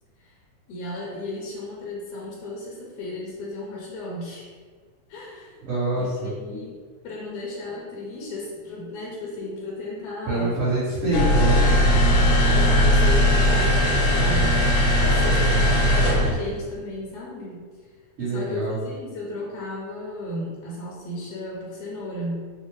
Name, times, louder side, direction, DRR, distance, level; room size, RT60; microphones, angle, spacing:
voice 1, 0.7-4.6 5.1-5.6 5.9-6.8 7.0-10.5 11.5-11.8 12.1-17.6 18.3-22.5, left 2 dB, 75° left, -4 dB, 1.7 m, -34 dB
voice 2, 5.6-6.3 10.3-11.6 18.2-18.8, right 2 dB, 55° right, -14 dB, 2.3 m, -25 dB
sound 1, 11.1-16.3, equal, 90° left, 2.3 m, -18 dB
5.7 x 2.5 x 3.1 m, 1.6 s
omnidirectional pair, 3.4 m